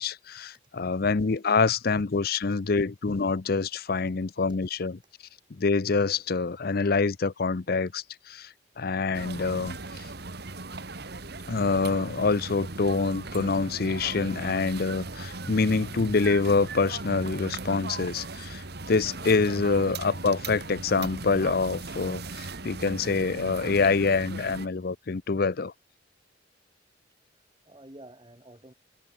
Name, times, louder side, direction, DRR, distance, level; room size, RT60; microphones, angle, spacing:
voice 1, 0.0-5.0 5.5-10.1 11.5-25.7, left 4 dB, 50° left, 0.6 m, -26 dB
sound 1, 9.1-24.7, right 3 dB, 55° right, 2.0 m, -38 dB
voice 2, 27.4-28.7, right 1 dB, 25° right, 2.4 m, -52 dB
head